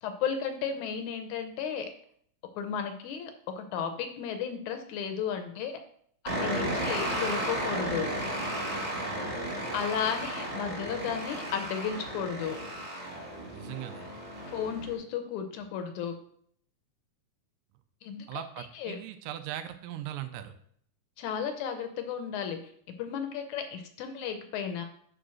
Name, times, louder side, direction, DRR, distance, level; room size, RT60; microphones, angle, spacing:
voice 1, 0.0-1.9 2.6-5.8 6.4-8.1 9.7-12.6 14.5-16.1 18.0-18.3 18.6-19.0 21.2-22.6 23.0-24.8, left 7 dB, 75° left, 7 dB, 2.0 m, -34 dB
sound 1, 6.3-14.9, right 1 dB, 20° right, 0.9 m, -34 dB
voice 2, 13.5-14.1 18.3-20.5, right 12 dB, 90° right, 9 dB, 2.3 m, -40 dB
5.7 x 5.0 x 6.2 m, 0.64 s
omnidirectional pair, 3.8 m